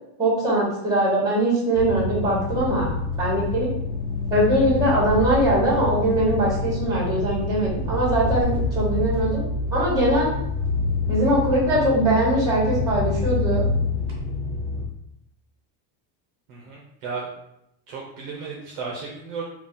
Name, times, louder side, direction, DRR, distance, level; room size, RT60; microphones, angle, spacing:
voice 1, 0.2-2.9 3.2-3.7 4.3-9.4 9.7-10.3 11.1-13.6, right 1 dB, 10° right, -5 dB, 1.4 m, -21 dB
sound 1, 1.7-14.8, left 3 dB, 25° right, 1.0 m, -26 dB
voice 2, 16.5-17.3 17.9-19.4, right 4 dB, 45° right, -2 dB, 0.7 m, -34 dB
4.1 x 2.4 x 3.6 m, 0.80 s
cardioid pair, 180°, 46 cm